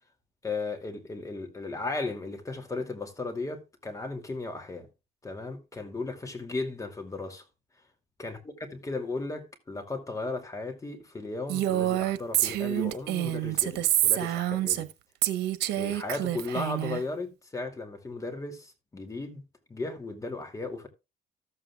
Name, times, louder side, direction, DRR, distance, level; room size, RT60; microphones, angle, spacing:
voice 1, 0.4-4.9 5.2-7.5 8.2-14.9 15.7-19.4 19.7-20.9, left 3 dB, 20° left, 2.4 m, -35 dB
Female speech woman speaking, 11.5-14.9 15.2-17.0, right 14 dB, 85° right, 1.0 m, -27 dB
14.0 x 7.9 x 2.3 m
cardioid pair, 110°, 17 cm